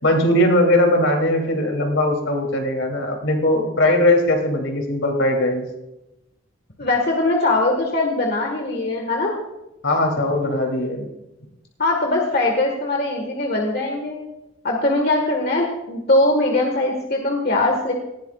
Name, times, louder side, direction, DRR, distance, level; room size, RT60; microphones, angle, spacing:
voice 1, 0.0-5.7 9.8-11.1, left 1 dB, 75° left, 2 dB, 3.1 m, -19 dB
voice 2, 6.8-9.3 11.8-14.2 14.6-17.9, left 2 dB, 50° left, 1 dB, 1.6 m, -21 dB
19.0 x 15.5 x 2.4 m, 0.92 s
head